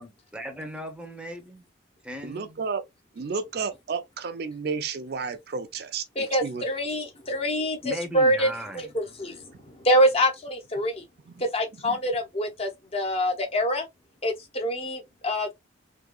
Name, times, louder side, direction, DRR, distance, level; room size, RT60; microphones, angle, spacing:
voice 1, 0.0-1.6 2.0-2.6 7.8-8.9, equal, 5° right, 0.7 m, -37 dB
voice 2, 2.2-2.8 3.2-6.6 11.8-12.0, right 5 dB, 55° right, 0.4 m, -32 dB
voice 3, 6.2-8.5 8.7-9.5 9.8-11.0 11.4-13.9 14.2-15.5, equal, 30° left, 0.7 m, -25 dB
3.6 x 2.8 x 2.2 m
head